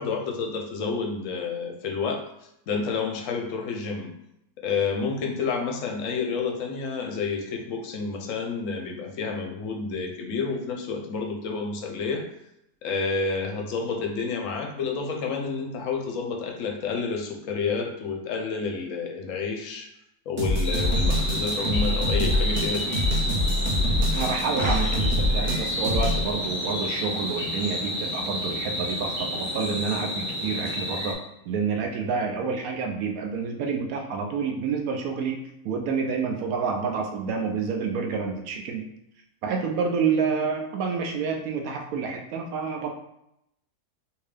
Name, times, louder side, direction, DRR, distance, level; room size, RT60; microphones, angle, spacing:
voice 1, 0.0-2.2 2.7-4.1 4.6-12.2 12.8-19.9 20.3-23.1, left 4 dB, 65° left, 2 dB, 0.9 m, -29 dB
sound 1, 20.4-26.2, left 1 dB, 45° right, 0.5 m, -25 dB
sound 2, 20.6-31.1, equal, 10° left, 0.6 m, -30 dB
voice 2, 24.1-31.2 31.5-38.9 39.4-42.9, right 5 dB, 70° right, 3 dB, 0.9 m, -28 dB
3.4 x 2.7 x 3.3 m, 0.80 s
omnidirectional pair, 1.7 m